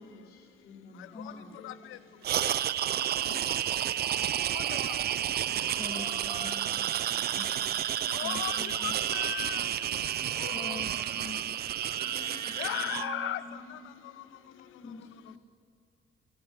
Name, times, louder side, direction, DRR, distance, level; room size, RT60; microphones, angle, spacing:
voice 1, 0.0-1.6 4.3-4.6 12.0-15.4, left 2 dB, 50° left, 3.2 m, -52 dB
voice 2, 1.1-1.7 5.8-6.7 7.1-7.5 8.2-9.0 10.5-11.6 12.4-12.7 14.8-15.4, left 3 dB, 30° left, 2.1 m, -44 dB
sound 1, 2.2-13.3, right 4 dB, 30° right, 1.5 m, -48 dB
sound 2, 2.2-13.1, right 11 dB, 55° right, 0.4 m, -31 dB
voice 3, 4.5-5.0 8.1-9.7 10.4-10.8 12.6-13.8, left 14 dB, 85° left, 0.6 m, -37 dB
18.0 x 12.5 x 5.6 m
cardioid pair, 90°, 20 cm